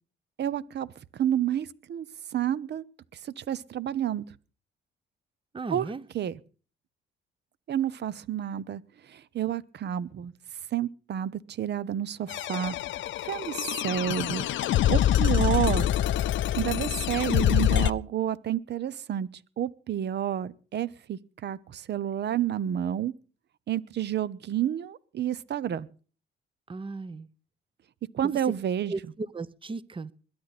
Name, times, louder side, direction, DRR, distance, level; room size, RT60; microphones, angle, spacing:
voice 1, 0.4-2.1 2.3-2.8 3.2-4.2 5.7-6.4 7.7-8.8 9.1-10.3 10.7-14.5 14.9-15.9 16.6-19.3 19.6-23.1 23.7-25.9 28.1-28.9, right 10 dB, 60° right, 0.9 m, -30 dB
voice 2, 5.5-6.0 26.7-27.3 28.9-30.1, right 3 dB, 25° right, 0.9 m, -36 dB
sound 1, 12.3-17.9, left 11 dB, 70° left, 0.6 m, -25 dB
21.5 x 10.5 x 4.2 m
cardioid pair, 90°, 20 cm